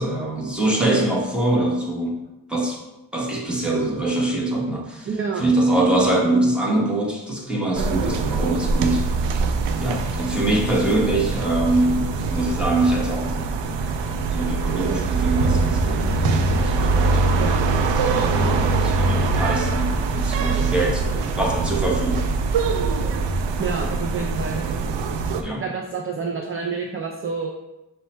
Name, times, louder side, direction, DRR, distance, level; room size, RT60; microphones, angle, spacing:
voice 1, 0.0-2.1 2.5-2.8 3.1-5.1 5.4-9.4 9.7-13.6 14.3-17.3 18.0-21.0 21.4-22.4 25.4-25.6, right 2 dB, ahead, -2 dB, 1.1 m, -23 dB
voice 2, 5.1-5.4 17.4-17.6 23.6-24.6 25.6-27.5, right 5 dB, 30° right, 1 dB, 0.5 m, -28 dB
sound 1, 7.7-25.4, right 3 dB, 85° right, 0.5 m, -23 dB
5.5 x 2.2 x 4.3 m, 0.97 s
cardioid pair, 80°, 43 cm